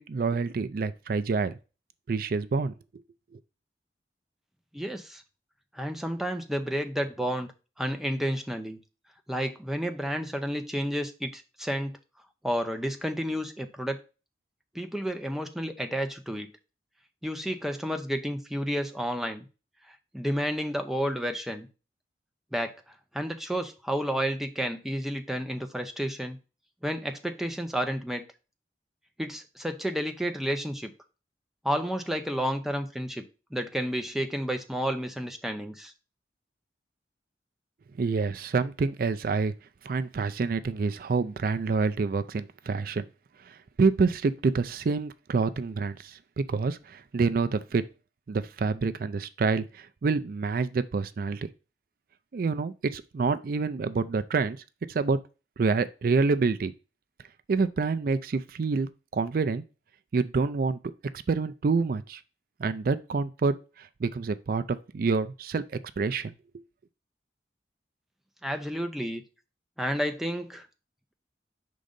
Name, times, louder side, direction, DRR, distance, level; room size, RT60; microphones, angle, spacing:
voice 1, 0.0-1.5 2.1-2.7 38.0-39.5 39.8-43.1 43.5-46.2 46.5-47.8 48.3-51.5 52.3-54.6 54.9-55.2 55.6-56.7 57.5-59.6 60.1-60.8 61.3-62.2 62.6-65.6 66.0-66.3, right 4 dB, 55° right, 0.4 m, -27 dB
voice 2, 4.7-5.2 5.7-7.5 7.8-8.8 9.3-12.0 12.4-14.0 14.7-16.5 17.2-19.4 20.1-21.7 22.5-22.8 23.1-26.4 26.8-28.2 29.2-30.9 31.6-33.3 33.5-35.9 68.4-69.2 69.8-70.7, equal, ahead, 0.6 m, -31 dB
5.2 x 3.8 x 5.1 m
head